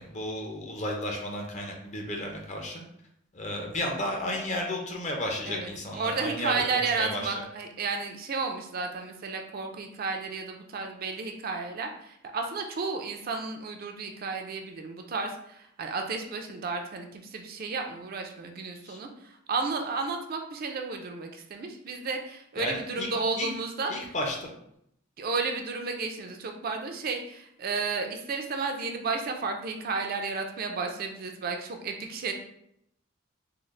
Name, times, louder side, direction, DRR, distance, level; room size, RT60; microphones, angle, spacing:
voice 1, 0.0-2.8 3.3-7.3 18.9-19.0 22.6-23.1 23.4-23.5 23.9-24.5, left 1 dB, 35° left, 1 dB, 0.6 m, -33 dB
voice 2, 5.5-23.9 25.2-32.3, right 4 dB, 50° right, 4 dB, 0.4 m, -32 dB
3.7 x 2.0 x 3.1 m, 0.74 s
head